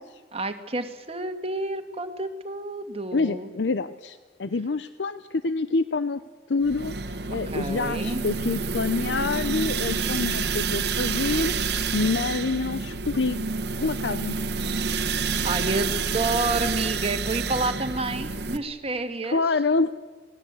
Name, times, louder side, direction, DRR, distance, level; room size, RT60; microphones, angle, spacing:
voice 1, 0.3-3.5 7.5-8.2 15.4-19.4, right 2 dB, 35° right, 7 dB, 1.8 m, -29 dB
voice 2, 3.1-6.2 6.5-13.4 13.8-14.3 19.3-19.9, left 3 dB, 85° left, 12 dB, 0.7 m, -27 dB
sound 1, 6.6-18.6, right 4 dB, 65° right, 1.3 m, -28 dB
26.5 x 19.0 x 8.2 m, 1.4 s
head